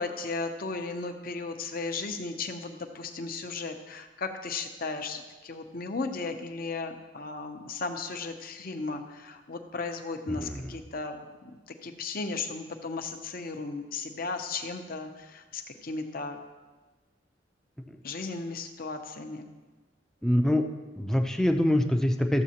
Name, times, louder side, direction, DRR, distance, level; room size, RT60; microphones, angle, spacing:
voice 1, 0.0-11.2 11.8-16.4 18.0-19.5, left 3 dB, 50° left, 5 dB, 0.8 m, -35 dB
voice 2, 10.3-10.8 17.9-18.0 20.2-20.6 20.9-22.4, left 1 dB, 5° left, 4 dB, 0.5 m, -25 dB
13.5 x 7.2 x 2.9 m, 1.2 s
head